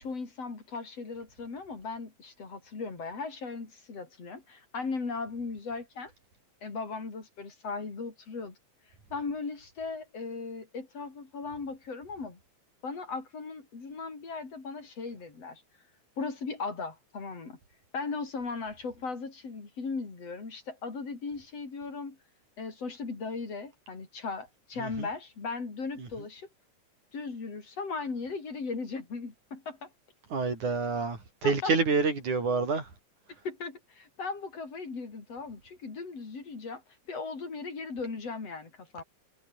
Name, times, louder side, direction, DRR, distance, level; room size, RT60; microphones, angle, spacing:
voice 1, 0.0-6.1 6.6-8.6 9.1-12.4 12.8-15.6 16.2-17.6 17.9-22.2 22.6-26.5 27.1-29.9 31.4-31.7 33.4-36.8 37.1-39.0, left 4 dB, 55° left, 5.6 m, -37 dB
voice 2, 30.3-32.9, right 4 dB, 85° right, 7.4 m, -28 dB
omnidirectional pair, 3.4 m